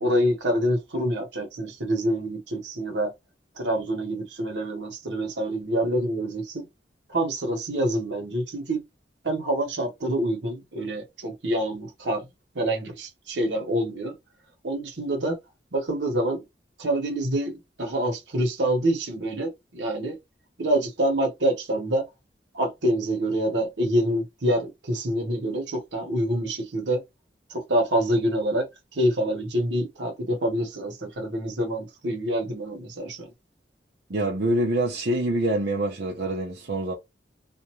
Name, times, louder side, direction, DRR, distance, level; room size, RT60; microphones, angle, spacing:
voice 1, 0.0-3.1 3.6-6.6 7.1-8.8 9.2-12.2 12.5-14.1 14.6-15.4 15.7-16.4 16.8-20.2 20.6-22.1 22.5-27.0 27.5-28.7 28.9-33.3, right 1 dB, 85° right, 1.1 m, -26 dB
voice 2, 34.1-36.9, right 1 dB, 65° right, 0.6 m, -25 dB
2.4 x 2.2 x 2.9 m
head